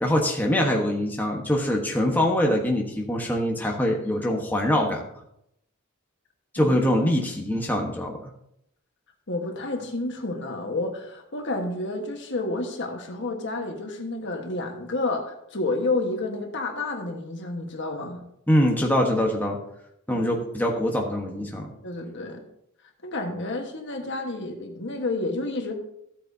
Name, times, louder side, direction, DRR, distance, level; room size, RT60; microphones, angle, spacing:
voice 1, 0.0-5.0 6.5-8.2 18.5-19.6 20.1-21.7, left 1 dB, 10° left, 0 dB, 1.2 m, -23 dB
voice 2, 9.3-18.2 21.8-22.4 23.0-25.7, left 2 dB, 55° left, 3 dB, 1.5 m, -30 dB
14.5 x 8.3 x 2.8 m, 0.77 s
head